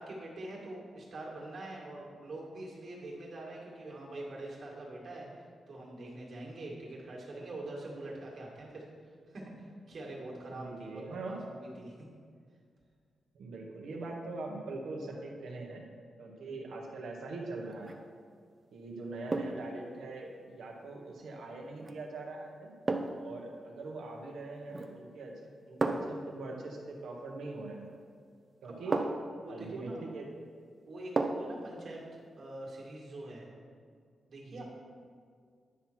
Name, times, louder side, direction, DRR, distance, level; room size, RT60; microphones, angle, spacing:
voice 1, 0.0-8.8 9.3-11.9 28.7-29.0 29.4-30.0 30.9-33.5 34.3-34.6, right 2 dB, 55° right, -3 dB, 2.1 m, -44 dB
voice 2, 10.5-11.4 13.3-15.8 16.2-18.0 18.7-22.7 23.2-27.9 28.6-29.0 29.5-30.3 34.5-34.6, right 2 dB, 85° right, 0 dB, 1.4 m, -42 dB
sound 1, 17.7-18.1 19.3-19.7 21.8-22.0 22.9-23.3 24.7-25.1 25.8-26.2 27.9-28.0 28.9-29.4 31.2-31.6 32.0-32.1, right 3 dB, 30° right, 0.5 m, -33 dB
10.0 x 5.8 x 4.5 m, 2.1 s
wide cardioid pair, 150°, 0 cm